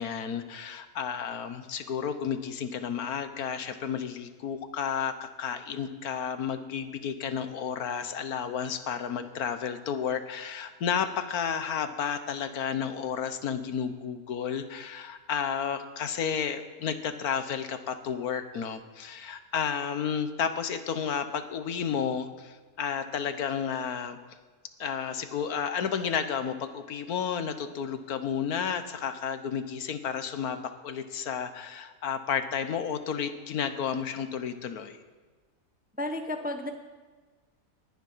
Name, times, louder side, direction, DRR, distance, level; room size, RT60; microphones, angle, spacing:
voice 1, 0.0-24.2 24.8-35.0, left 7 dB, 75° left, 9 dB, 1.5 m, -32 dB
voice 2, 36.0-36.7, left 1 dB, 10° right, 5 dB, 0.7 m, -32 dB
19.5 x 10.0 x 5.6 m, 1.4 s
omnidirectional pair, 1.6 m